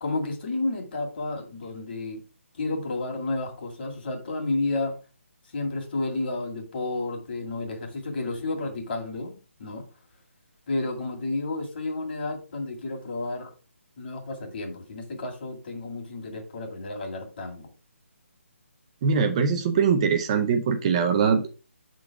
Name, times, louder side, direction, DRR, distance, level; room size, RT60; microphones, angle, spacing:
voice 1, 0.0-2.2 2.6-5.0 5.5-9.9 10.7-13.5 14.0-17.7, left 2 dB, 45° left, 2.0 m, -31 dB
voice 2, 19.0-21.5, right 6 dB, 25° right, 0.5 m, -22 dB
6.6 x 3.9 x 4.6 m
hypercardioid pair, 160°, 7 cm